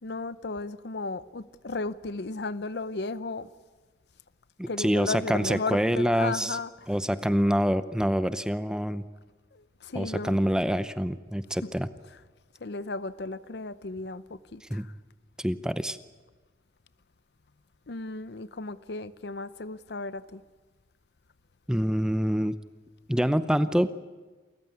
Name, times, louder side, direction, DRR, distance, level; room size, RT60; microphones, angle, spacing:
voice 1, 0.0-3.5 4.7-6.9 9.5-10.4 11.6-11.7 12.6-14.9 17.9-20.4, left 3 dB, 65° left, 0.7 m, -35 dB
voice 2, 4.6-6.6 6.9-9.1 9.9-11.9 14.7-14.9 15.4-16.0 21.7-22.5 23.1-23.9, equal, 5° right, 0.6 m, -26 dB
28.5 x 14.5 x 9.4 m
head